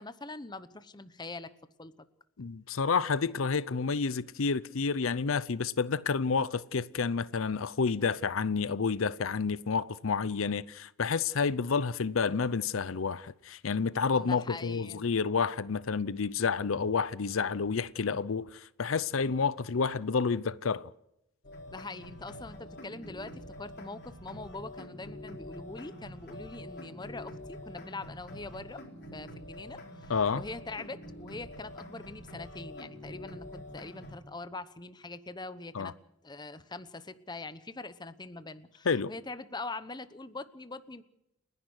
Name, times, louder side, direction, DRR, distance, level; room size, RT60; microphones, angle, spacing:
voice 1, 0.0-1.5 1.8-1.9 14.1-15.0 21.7-28.8 29.1-35.9 36.2-41.0, left 3 dB, 20° left, 0.9 m, -43 dB
voice 2, 2.4-20.9 30.1-30.4 35.7-35.9 38.8-39.1, left 5 dB, 90° left, 0.6 m, -29 dB
sound 1, 21.4-34.2, left 1 dB, 55° left, 4.3 m, -46 dB
30.0 x 11.0 x 7.9 m
head